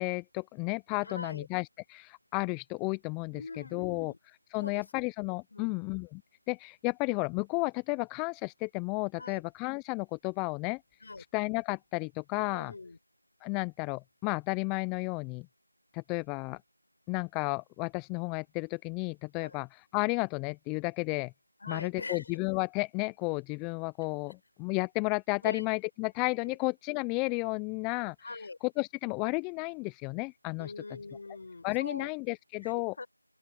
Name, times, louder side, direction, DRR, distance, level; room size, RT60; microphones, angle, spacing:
voice 1, 0.0-6.2 6.5-10.8 11.3-12.7 13.4-15.5 15.9-16.6 17.1-21.3 21.7-28.2 28.8-30.7 31.6-32.9, left 31 dB, 5° left, 0.3 m, -33 dB
voice 2, 1.0-1.5 3.3-4.2 4.5-4.8 5.5-5.8 9.2-9.4 11.0-11.2 12.3-13.0 19.4-19.6 21.6-22.4 25.4-25.6 26.5-26.6 28.2-28.6 30.6-32.1 32.6-33.1, left 3 dB, 40° left, 5.3 m, -43 dB
open air
figure-of-eight pair, 170°, 0 cm